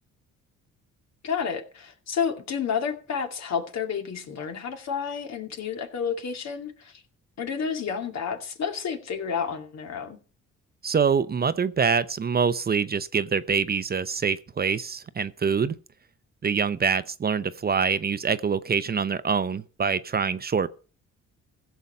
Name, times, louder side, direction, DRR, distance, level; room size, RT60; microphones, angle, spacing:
voice 1, 1.2-7.0 7.4-10.2, left 6 dB, 60° left, 2.3 m, -30 dB
voice 2, 10.8-15.7 16.4-20.7, right 6 dB, 30° right, 0.7 m, -25 dB
15.5 x 7.0 x 5.6 m
cardioid pair, 90°, 30 cm